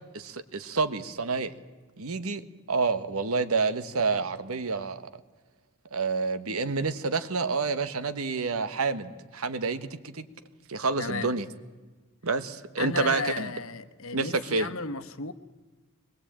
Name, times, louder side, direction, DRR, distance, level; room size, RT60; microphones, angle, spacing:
voice 1, 0.1-1.5 2.0-2.4 2.7-5.1 5.9-10.2 10.7-11.5 12.2-13.5 14.1-14.7, right 4 dB, 75° right, 12 dB, 1.3 m, -28 dB
voice 2, 11.0-11.3 12.8-15.3, left 4 dB, 65° left, 10 dB, 1.2 m, -34 dB
23.0 x 21.0 x 8.8 m, 1.3 s
head